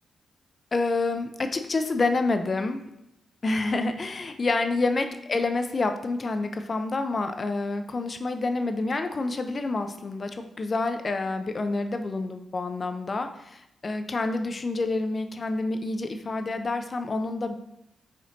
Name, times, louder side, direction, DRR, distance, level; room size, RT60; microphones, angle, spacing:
voice 1, 0.7-2.8 3.4-17.6, left 3 dB, 40° left, 7 dB, 0.4 m, -28 dB
5.0 x 2.6 x 4.0 m, 0.84 s
cardioid pair, 65°, 0 cm